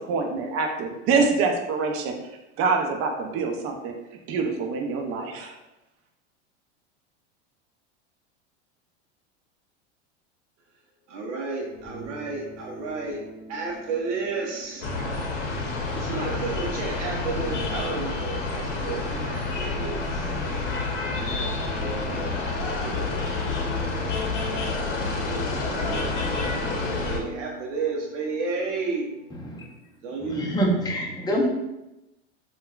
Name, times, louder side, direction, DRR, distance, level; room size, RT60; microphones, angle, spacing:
voice 1, 0.0-2.1 2.6-3.9 4.3-5.5, right 4 dB, 40° right, 3 dB, 0.5 m, -25 dB
voice 2, 11.1-13.2 13.5-14.9 15.9-20.3 21.1-21.5 21.8-22.4 22.8-29.1 30.0-30.4, right 3 dB, 85° right, -1 dB, 0.6 m, -33 dB
sound 1, 11.6-29.7, right 2 dB, 20° right, 1.1 m, -43 dB
sound 2, 14.8-27.2, left 3 dB, 85° left, 0.7 m, -29 dB
voice 3, 30.2-31.5, right 1 dB, 10° left, -1 dB, 0.5 m, -25 dB
3.4 x 2.2 x 2.3 m, 0.94 s
hypercardioid pair, 105°, 35 cm